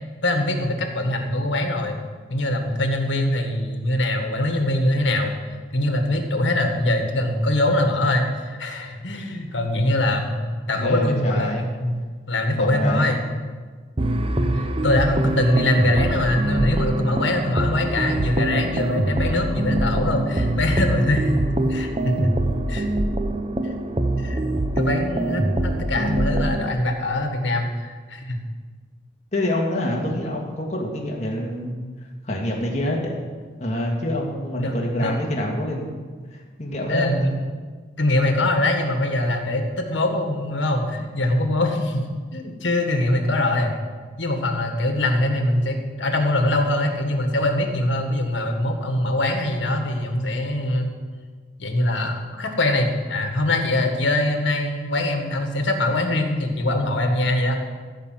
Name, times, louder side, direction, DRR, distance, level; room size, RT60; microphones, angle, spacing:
voice 1, 0.2-2.0 2.3-5.3 5.7-10.4 10.7-11.9 12.3-13.2 14.5-21.4 21.7-22.9 23.6-23.7 24.2-24.5 24.7-28.4 34.5-35.2 36.9-37.4 38.0-42.0 42.3-43.7 44.2-50.9 51.6-57.6, left 1 dB, 80° left, 4 dB, 1.7 m, -23 dB
voice 2, 10.8-11.7 12.5-13.1 15.4-15.5 29.3-31.8 32.2-33.1 33.6-36.0 36.3-37.1, left 1 dB, 35° left, -1 dB, 2.1 m, -26 dB
sound 1, 14.0-26.8, right 1 dB, 30° right, 0.7 m, -24 dB
15.0 x 5.7 x 7.7 m, 1.5 s
head